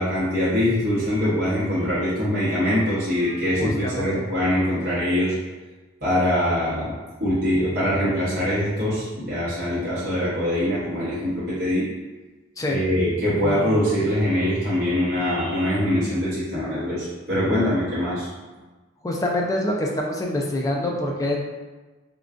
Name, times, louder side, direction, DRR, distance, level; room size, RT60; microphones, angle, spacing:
voice 1, 0.0-5.3 6.0-6.9 7.2-11.8 12.7-18.3, left 1 dB, 55° right, -11 dB, 0.9 m, -23 dB
voice 2, 3.6-4.2 12.6-12.8 19.0-21.4, left 1 dB, 15° left, -1 dB, 0.3 m, -25 dB
3.6 x 2.2 x 2.4 m, 1.2 s
head